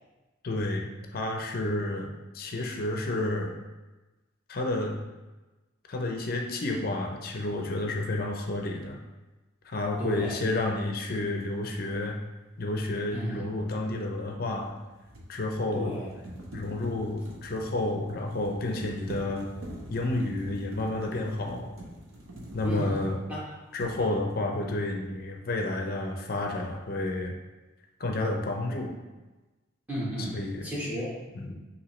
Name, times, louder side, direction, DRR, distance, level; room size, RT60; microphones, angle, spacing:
voice 1, 0.4-3.6 4.5-5.0 5.9-9.0 9.6-12.2 12.6-14.7 15.3-15.9 16.5-19.5 19.9-21.7 22.5-23.2 23.7-27.3 28.0-28.9 30.2-30.7 31.3-31.5, left 2 dB, 45° left, 2 dB, 0.5 m, -30 dB
voice 2, 10.0-10.3 13.1-13.4 15.7-16.1 22.6-23.0 23.3-23.4 24.0-24.1 29.9-31.5, equal, 10° right, -7 dB, 1.1 m, -34 dB
sound 1, 11.4-11.6 14.6-23.4 23.7-24.5, equal, 90° right, 0.9 m, -44 dB
5.9 x 2.7 x 3.1 m, 1.1 s
head